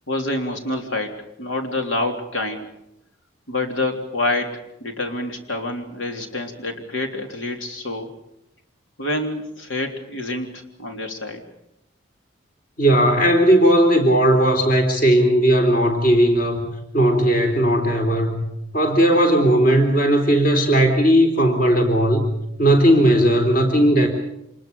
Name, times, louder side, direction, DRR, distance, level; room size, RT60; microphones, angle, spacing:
voice 1, 0.1-2.7 3.5-8.1 9.0-11.4, left 2 dB, 80° left, 4 dB, 3.5 m, -27 dB
voice 2, 12.8-18.4 18.7-22.3 22.6-24.1, right 1 dB, 45° left, 4 dB, 3.7 m, -17 dB
26.5 x 21.0 x 7.0 m, 0.82 s
head